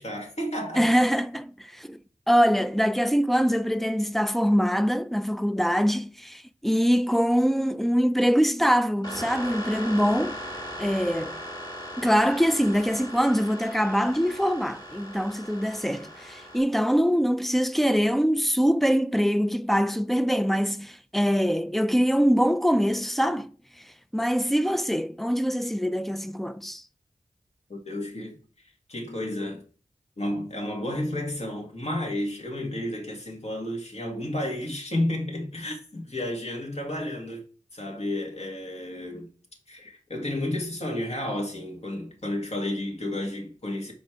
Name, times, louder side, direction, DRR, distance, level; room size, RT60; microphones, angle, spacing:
voice 1, 0.0-0.9 27.7-28.4 28.9-29.6 30.2-37.4 37.7-39.3 39.7-43.9, left 1 dB, 50° left, 1.9 m, -31 dB
voice 2, 0.8-2.0 2.3-10.4 10.8-11.4 12.0-23.5 24.1-26.8, equal, ahead, 0.4 m, -23 dB
sound 1, 9.0-16.6, equal, 35° left, 2.2 m, -38 dB
5.2 x 4.3 x 4.6 m
cardioid pair, 50°, 14 cm